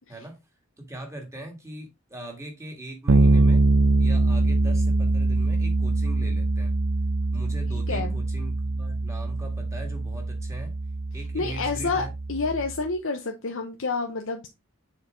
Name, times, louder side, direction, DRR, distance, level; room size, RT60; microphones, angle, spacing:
voice 1, 0.8-3.7 4.0-6.7 7.3-10.7 11.1-12.1, right 1 dB, 15° right, 1.8 m, -40 dB
Bass guitar, 3.1-12.7, right 2 dB, 80° right, 0.6 m, -23 dB
voice 2, 7.9-8.2 11.3-14.5, left 4 dB, 65° left, 0.8 m, -29 dB
6.7 x 4.6 x 3.7 m
head